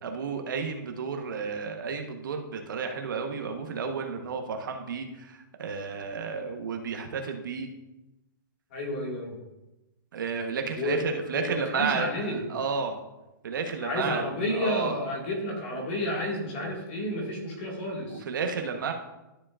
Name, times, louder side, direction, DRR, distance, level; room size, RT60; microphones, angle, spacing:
voice 1, 0.0-7.7 10.1-13.0 13.4-14.2 14.5-15.0 18.1-18.9, right 5 dB, 60° right, 4 dB, 1.1 m, -32 dB
voice 2, 8.7-9.4 10.7-11.0 11.3-12.5 13.8-18.2, left 1 dB, 30° left, -1 dB, 2.0 m, -31 dB
12.5 x 7.3 x 2.5 m, 1.0 s
hypercardioid pair, 175°, 12 cm